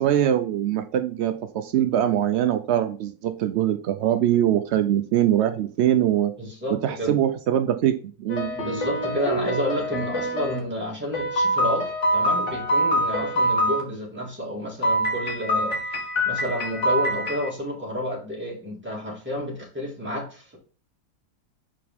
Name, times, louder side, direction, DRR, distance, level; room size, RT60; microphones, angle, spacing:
voice 1, 0.0-6.3 6.7-8.5, right 11 dB, 85° right, 8 dB, 0.6 m, -22 dB
voice 2, 6.4-7.1 8.5-15.8 16.3-20.6, equal, 5° right, -4 dB, 2.0 m, -30 dB
sound 1, 8.3-10.6 11.1-13.8 14.8-17.5, equal, 50° left, 1.6 m, -25 dB
6.2 x 4.8 x 3.5 m, 0.39 s
omnidirectional pair, 1.7 m